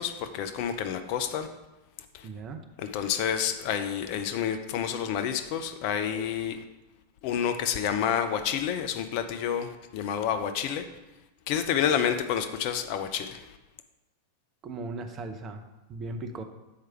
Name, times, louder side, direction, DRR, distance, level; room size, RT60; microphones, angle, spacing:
voice 1, 0.0-1.5 2.1-2.3 2.8-6.6 7.2-10.9 11.5-13.5, left 8 dB, 45° left, 8 dB, 0.5 m, -29 dB
voice 2, 2.2-2.6 14.6-15.6 15.9-16.4, right 3 dB, 30° right, 6 dB, 0.7 m, -37 dB
7.6 x 4.6 x 4.5 m, 1.0 s
figure-of-eight pair, 90°, 0 cm